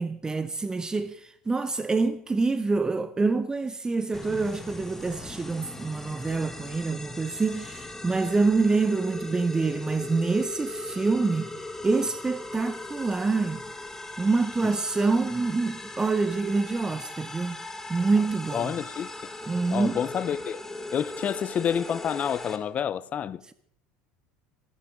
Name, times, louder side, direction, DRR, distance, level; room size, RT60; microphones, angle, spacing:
voice 1, 0.0-11.5 11.8-13.6 14.2-17.6 17.9-18.7 19.5-20.0, right 3 dB, 15° right, 0.7 m, -26 dB
sound 1, 4.1-22.6, left 2 dB, 10° left, 1.7 m, -39 dB
voice 2, 18.5-19.1 19.7-20.6 20.9-23.4, left 8 dB, 35° left, 0.6 m, -28 dB
27.5 x 9.6 x 3.6 m
hypercardioid pair, 80°, 4 cm